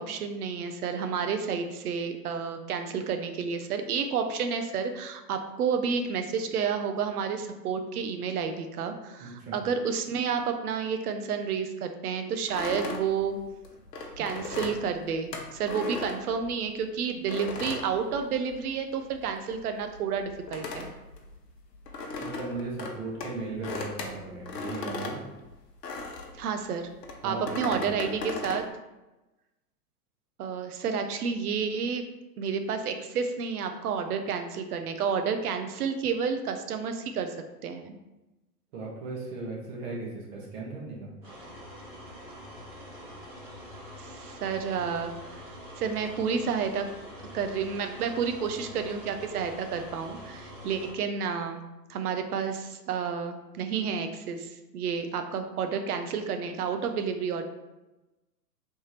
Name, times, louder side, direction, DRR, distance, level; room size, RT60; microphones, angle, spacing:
voice 1, 0.0-13.4 14.2-20.9 26.4-26.9 27.2-28.6 30.4-32.0 32.4-37.3 37.6-38.0 44.0-45.1 45.8-46.9 47.3-57.5, right 6 dB, 65° right, 7 dB, 0.8 m, -30 dB
voice 2, 9.2-9.6 22.2-25.3 27.2-27.9 38.7-41.1, right 3 dB, 40° right, -3 dB, 1.3 m, -37 dB
sound 1, 12.5-16.8 17.3-18.8 19.0-26.4 27.0-28.7, left 3 dB, 80° left, 1.0 m, -37 dB
sound 2, 41.2-50.9, equal, 5° right, 0.4 m, -45 dB
3.5 x 3.3 x 4.2 m, 1.0 s
hypercardioid pair, 130°, 48 cm